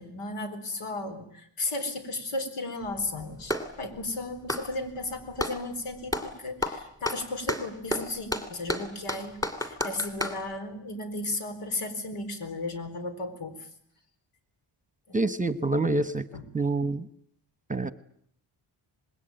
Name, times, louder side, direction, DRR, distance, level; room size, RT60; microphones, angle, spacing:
voice 1, 0.0-13.7 15.1-15.2 16.3-16.4, left 2 dB, 85° left, 8 dB, 4.3 m, -35 dB
Clapping, 2.8-3.8 4.4-5.6 6.1-6.3 6.6-10.4, left 1 dB, 5° left, 2.8 m, -31 dB
voice 2, 15.1-16.2 16.5-17.1 17.7-17.9, right 2 dB, 15° right, 12 dB, 1.0 m, -26 dB
26.0 x 20.5 x 9.1 m, 0.68 s
wide cardioid pair, 120°, 50 cm